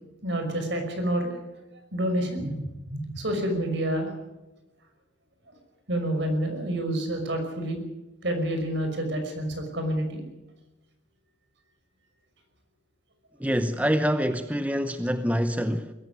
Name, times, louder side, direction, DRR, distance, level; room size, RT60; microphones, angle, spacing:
voice 1, 0.2-1.4 1.9-4.1 5.9-7.8 8.2-10.2, right 1 dB, 65° right, 5.7 m, -28 dB
voice 2, 13.4-15.9, equal, 10° right, 0.8 m, -26 dB
22.0 x 14.5 x 9.8 m
head